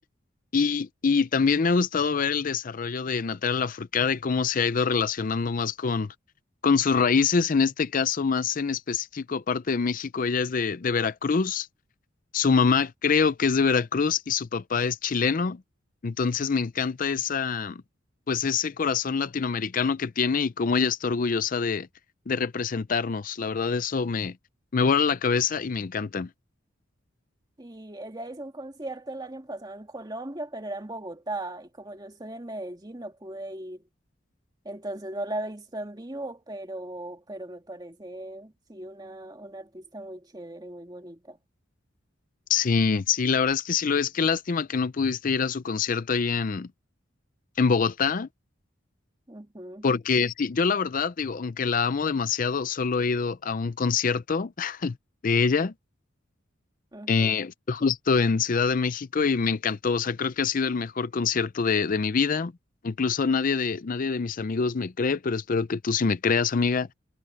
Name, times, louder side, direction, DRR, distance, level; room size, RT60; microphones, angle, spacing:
voice 1, 0.5-6.1 6.6-11.7 12.3-15.6 16.0-17.8 18.3-21.9 22.3-24.3 24.7-26.3 42.5-46.7 47.6-48.3 49.8-55.0 55.2-55.7 57.1-62.5 62.8-66.9, left 5 dB, 45° left, 0.5 m, -25 dB
voice 2, 27.6-33.8 34.7-41.4 49.3-49.9 56.9-57.4, right 1 dB, 20° right, 1.8 m, -38 dB
head